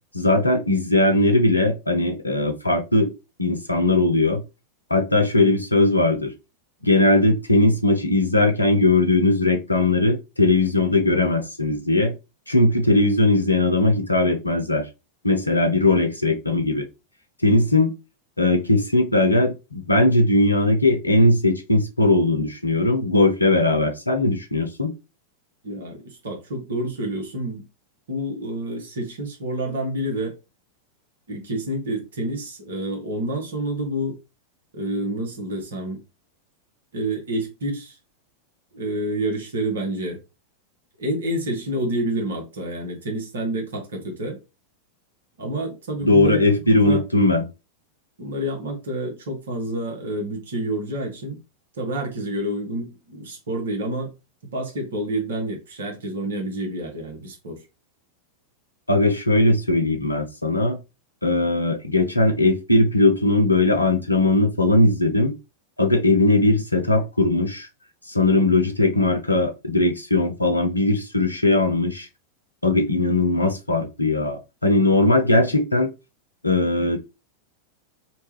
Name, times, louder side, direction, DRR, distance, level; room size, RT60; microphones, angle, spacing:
voice 1, 0.1-3.1 3.4-4.4 4.9-6.3 6.8-12.1 12.5-14.9 15.2-16.9 17.4-17.9 18.4-24.9 46.0-47.4 58.9-60.8 61.2-65.3 65.8-67.7 68.1-72.1 72.6-75.9 76.4-77.0, left 2 dB, 85° left, 0.5 m, -19 dB
voice 2, 25.6-27.6 28.1-30.3 31.3-34.2 34.7-36.0 36.9-38.0 38.7-40.2 41.0-44.4 45.4-46.4 46.8-47.0 48.2-51.4 51.8-54.1 54.5-57.6, right 1 dB, 65° right, 0.9 m, -28 dB
2.8 x 2.2 x 3.0 m
figure-of-eight pair, 90°, 0 cm